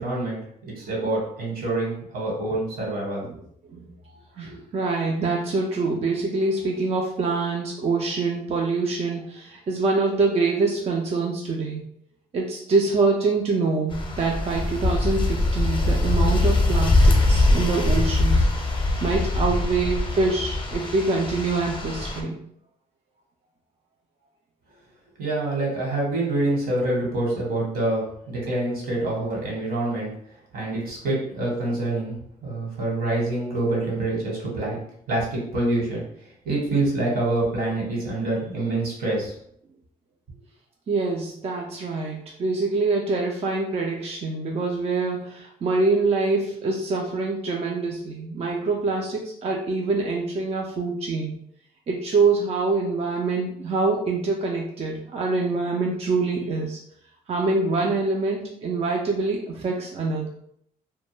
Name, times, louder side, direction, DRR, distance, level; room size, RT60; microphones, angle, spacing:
voice 1, 0.0-3.3 4.4-4.6 25.2-30.1 30.5-32.2 32.4-34.8 35.1-39.3, right 2 dB, 70° right, -3 dB, 1.2 m, -26 dB
voice 2, 4.4-11.8 12.3-22.4 40.9-51.4 51.9-56.8 57.3-60.3, right 3 dB, 40° right, -1 dB, 0.4 m, -25 dB
sound 1, 13.9-22.2, left 2 dB, 30° left, 0.6 m, -22 dB
2.2 x 2.1 x 3.1 m, 0.70 s
cardioid pair, 80°, 16 cm